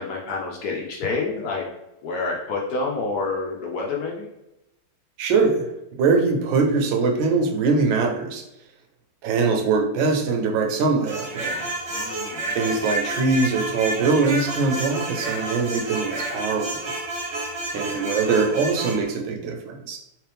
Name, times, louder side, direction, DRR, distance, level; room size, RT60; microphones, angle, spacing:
voice 1, 0.0-1.6 2.0-4.3 11.9-12.8 17.7-18.0, left 3 dB, 75° left, -1 dB, 0.9 m, -28 dB
voice 2, 5.2-5.7 6.0-8.4 9.2-11.7 12.5-16.8 17.7-20.0, right 4 dB, 80° right, 3 dB, 1.3 m, -22 dB
sound 1, 11.0-19.0, right 2 dB, 50° right, 0.8 m, -30 dB
3.2 x 3.2 x 3.3 m, 0.88 s
omnidirectional pair, 2.2 m